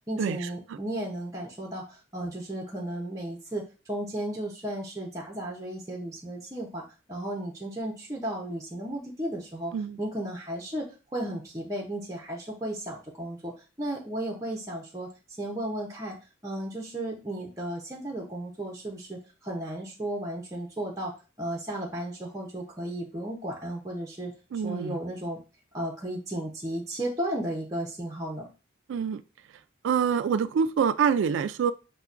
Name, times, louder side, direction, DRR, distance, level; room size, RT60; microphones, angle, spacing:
voice 1, 0.1-13.5 13.8-15.1 15.4-16.2 16.4-24.3 24.6-25.4 25.7-28.5, right 1 dB, 15° right, -2 dB, 0.6 m, -34 dB
voice 2, 24.5-25.0 28.9-29.2 29.8-31.7, right 7 dB, 80° right, 14 dB, 0.3 m, -25 dB
5.6 x 2.1 x 2.5 m, 0.32 s
head